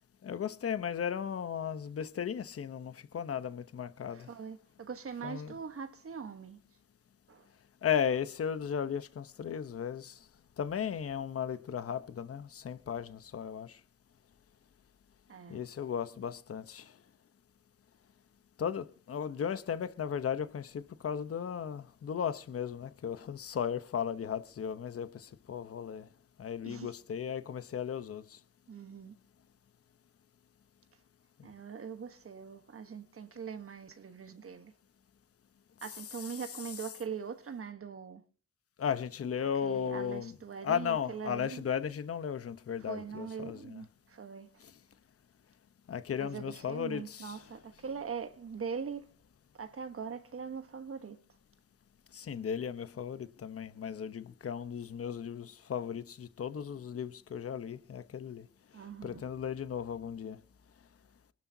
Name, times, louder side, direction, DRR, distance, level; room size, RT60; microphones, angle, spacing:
voice 1, 0.2-4.3 5.2-5.5 7.8-10.1 10.6-13.8 15.5-16.8 18.6-26.0 26.4-28.2 38.8-40.3 40.6-43.8 45.9-47.4 52.1-58.4 59.0-60.4, left 8 dB, 50° left, 0.9 m, -36 dB
voice 2, 4.1-6.6 7.3-7.5 15.3-15.6 26.6-26.9 28.7-29.1 31.4-34.7 35.8-38.2 39.6-41.6 42.8-44.5 46.2-49.1 49.5-51.2 58.7-59.2, right 6 dB, 50° right, 1.2 m, -42 dB
24.5 x 12.0 x 2.8 m
cardioid pair, 80°, 29 cm